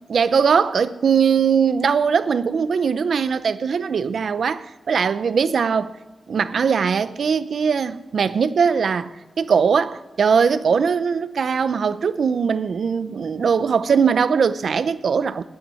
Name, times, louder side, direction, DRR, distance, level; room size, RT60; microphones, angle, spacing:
voice 1, 0.1-6.0 6.3-9.1 9.4-15.4, right 6 dB, 80° right, 0.6 m, -20 dB
11.0 x 9.1 x 9.8 m
wide cardioid pair, 115°, 0 cm